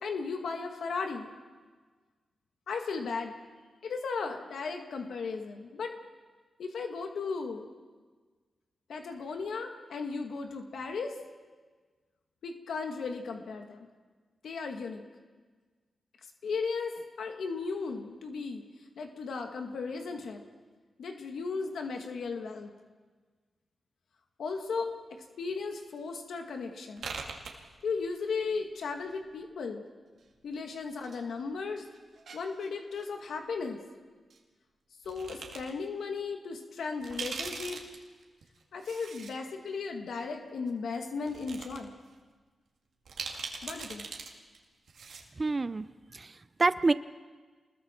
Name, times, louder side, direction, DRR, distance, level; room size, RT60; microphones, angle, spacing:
voice 1, 0.0-1.3 2.7-3.4 3.8-5.9 6.6-7.7 8.9-11.1 12.4-13.9 14.4-15.0 16.4-18.6 19.0-20.4 21.0-22.7 24.4-24.9 25.4-27.1 27.8-29.8 30.4-31.8 32.3-33.8 35.1-37.8 38.7-41.9 43.6-44.0, left 4 dB, 85° left, 4 dB, 1.8 m, -36 dB
sound 1, 27.0-28.2 28.5-29.4 30.2-31.2 31.5-33.0 34.3-34.4 35.0-35.7 36.2-36.3 36.9-39.3 39.7-39.8 40.7-40.8 41.2-41.8 42.1-42.2 43.1-44.3 44.5-44.6 44.9-45.3, right 5 dB, 85° right, 2.3 m, -41 dB
voice 2, 45.4-45.9 46.1-46.9, right 3 dB, 35° right, 14 dB, 0.6 m, -27 dB
28.5 x 21.0 x 4.5 m, 1.4 s
cardioid pair, 90°, 0 cm